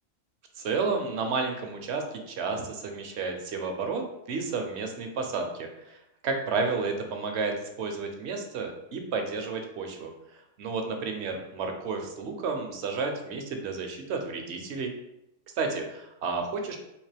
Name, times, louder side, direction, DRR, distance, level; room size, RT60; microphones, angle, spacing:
voice 1, 0.6-6.0 6.2-10.1 10.6-14.9 15.6-16.8, right 4 dB, 70° right, 4 dB, 0.8 m, -31 dB
3.6 x 2.9 x 3.3 m, 0.86 s
omnidirectional pair, 1.3 m